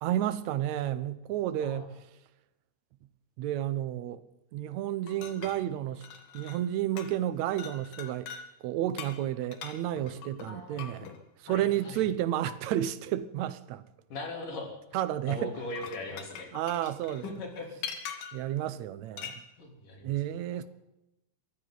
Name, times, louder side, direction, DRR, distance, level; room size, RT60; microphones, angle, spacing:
voice 1, 0.0-1.8 3.4-4.2 4.5-6.1 6.3-8.3 8.6-11.1 11.4-13.9 14.9-15.5 16.5-17.2 18.3-19.4 20.0-20.6, right 12 dB, 70° right, 2.0 m, -31 dB
sound 1, 5.1-6.7 7.0-7.3 7.6-8.5 9.0-11.2 12.5-12.6 15.6-18.5 19.2-19.4, left 7 dB, 85° left, 3.4 m, -43 dB
voice 2, 10.5-10.9 11.5-12.0 14.1-14.7 15.3-16.5 16.8-16.9 17.2-18.1 19.6-20.1, left 2 dB, 65° left, 5.1 m, -40 dB
23.0 x 15.0 x 4.1 m
omnidirectional pair, 3.9 m